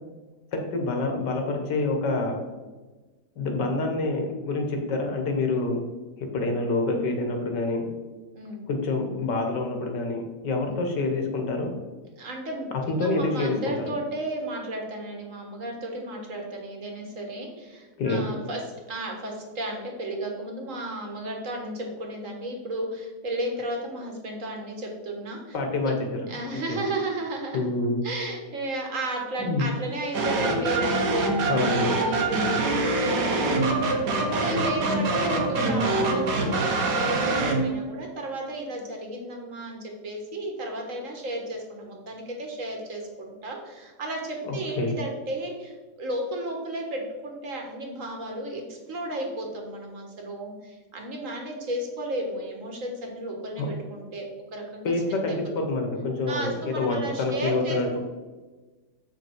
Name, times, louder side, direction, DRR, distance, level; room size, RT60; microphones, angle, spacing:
voice 1, 0.5-2.4 3.4-5.8 6.2-7.9 8.7-11.7 12.9-13.7 18.0-18.2 25.5-25.9 26.7-26.9 27.5-28.0 29.4-29.7 31.5-32.0 44.4-44.9 53.6-53.7 54.8-58.0, left 2 dB, 90° left, 3 dB, 1.9 m, -27 dB
voice 2, 8.3-8.7 9.7-9.9 10.7-10.8 12.1-25.6 25.8-25.9 26.3-27.6 28.0-31.5 31.8-54.3 54.5-54.9 55.3-55.4 56.3-58.0, right 1 dB, 50° right, 1 dB, 1.8 m, -34 dB
sound 1, 30.1-37.7, right 2 dB, 75° right, 1.8 m, -24 dB
7.9 x 5.8 x 4.5 m, 1.3 s
omnidirectional pair, 1.8 m